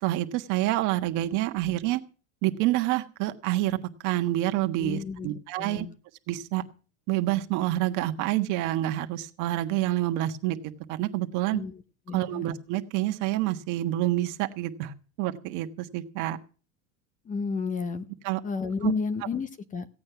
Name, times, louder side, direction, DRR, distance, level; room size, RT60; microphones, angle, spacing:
voice 1, 0.0-2.0 2.4-3.8 4.0-5.9 6.3-6.6 7.1-10.6 10.9-11.6 12.1-16.4 18.2-18.4 18.8-18.9, right 15 dB, 50° right, 7 dB, 1.5 m, -27 dB
voice 2, 4.8-5.3 5.6-5.9 11.5-11.8 12.1-12.5 17.2-18.0 18.4-19.9, left 5 dB, 20° left, 11 dB, 1.0 m, -31 dB
16.0 x 8.7 x 5.9 m, 0.38 s
supercardioid pair, 140°, 37 cm